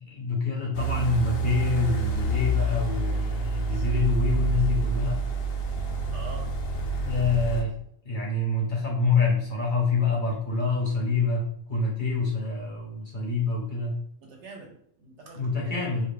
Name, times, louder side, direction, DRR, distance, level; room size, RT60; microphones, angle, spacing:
voice 1, 0.0-5.2 7.0-7.7 8.0-13.9 15.3-16.1, left 4 dB, 45° left, -3 dB, 0.8 m, -26 dB
sound 1, 0.7-7.6, right 3 dB, 80° left, 1.0 m, -28 dB
voice 2, 6.1-6.5 7.5-7.7 14.2-15.8, right 3 dB, 65° right, 0 dB, 1.0 m, -45 dB
2.8 x 2.3 x 3.2 m, 0.68 s
omnidirectional pair, 1.3 m